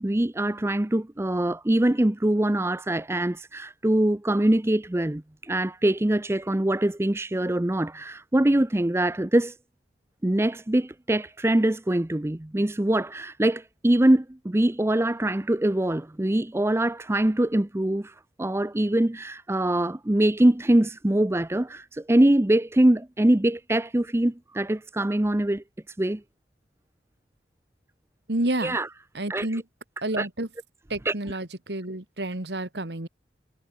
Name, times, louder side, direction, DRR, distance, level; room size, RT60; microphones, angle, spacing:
voice 1, 0.0-9.5 10.2-25.6 26.0-26.2 28.6-28.9 29.3-29.5 30.2-30.3 31.1-31.2, right 1 dB, 15° right, 0.6 m, -23 dB
voice 2, 28.3-28.8 29.1-29.6 30.0-30.5 30.9-33.1, right 1 dB, 70° right, 2.5 m, -29 dB
head